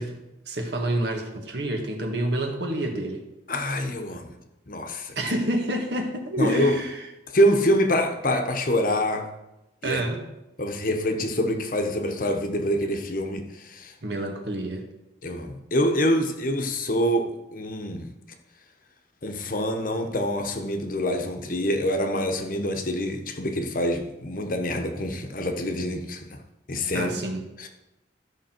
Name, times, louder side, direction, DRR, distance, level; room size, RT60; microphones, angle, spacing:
voice 1, 0.0-3.2 5.2-7.1 9.8-10.2 14.0-14.9 26.9-27.4, right 1 dB, 65° right, 3 dB, 1.6 m, -28 dB
voice 2, 3.5-4.3 4.7-5.1 6.4-6.7 7.3-9.3 9.8-10.0 10.6-13.9 15.2-18.1 19.2-26.4 26.7-27.1 27.6-27.7, equal, 45° left, 5 dB, 1.0 m, -25 dB
13.0 x 5.9 x 4.5 m, 0.94 s
head